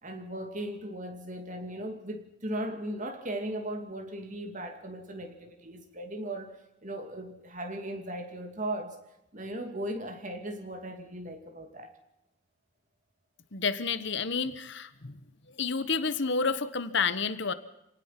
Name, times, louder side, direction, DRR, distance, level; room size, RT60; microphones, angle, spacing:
voice 1, 0.0-9.0 9.3-12.0, right 1 dB, 35° right, 2.7 m, -37 dB
voice 2, 13.5-15.2 15.6-17.5, left 5 dB, 55° left, 1.2 m, -30 dB
27.5 x 18.5 x 5.9 m
head